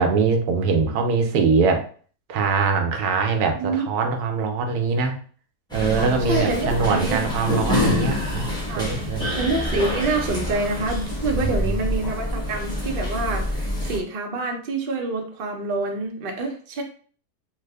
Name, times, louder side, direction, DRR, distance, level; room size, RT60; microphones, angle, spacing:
voice 1, 0.0-1.9 2.3-5.2 5.7-9.3 11.3-11.5, right 4 dB, 80° right, 4 dB, 1.1 m, -22 dB
voice 2, 3.5-3.9 6.2-7.2 8.7-8.9 9.4-16.8, right 3 dB, 50° right, 2 dB, 0.6 m, -26 dB
sound 1, 5.7-14.0, left 1 dB, 5° left, 0.7 m, -27 dB
3.3 x 2.1 x 3.3 m, 0.43 s
omnidirectional pair, 1.6 m